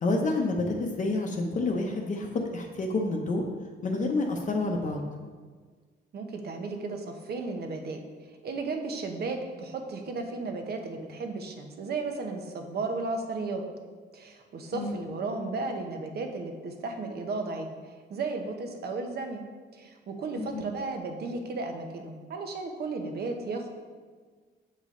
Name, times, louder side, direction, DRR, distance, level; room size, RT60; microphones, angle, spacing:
voice 1, 0.0-3.4 3.8-5.0 14.7-15.1 20.4-20.6, left 2 dB, 40° left, 1 dB, 0.7 m, -29 dB
voice 2, 6.1-8.0 8.4-13.6 14.1-17.7 18.1-19.4 19.7-23.7, right 3 dB, 60° right, 4 dB, 0.9 m, -34 dB
7.5 x 5.2 x 3.7 m, 1.5 s
cardioid pair, 120°, 19 cm